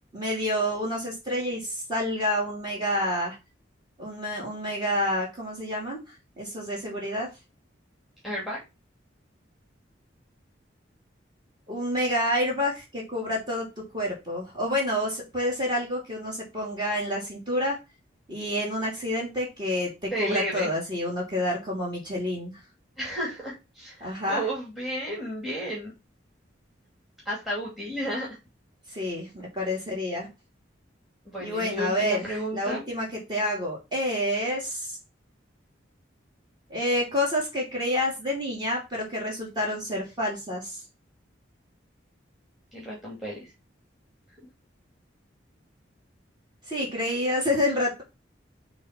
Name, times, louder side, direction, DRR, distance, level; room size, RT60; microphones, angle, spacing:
voice 1, 0.1-3.4 4.0-6.0 6.4-7.3 11.7-13.7 13.9-17.8 18.3-22.6 24.0-24.4 28.9-30.3 31.4-35.0 36.7-40.8 46.7-48.0, left 1 dB, 25° right, -3 dB, 3.0 m, -28 dB
voice 2, 8.2-8.6 20.1-20.7 23.0-25.9 27.2-28.4 31.2-33.0 42.7-43.4, equal, ahead, -5 dB, 2.5 m, -32 dB
6.3 x 3.4 x 5.8 m, 0.25 s
head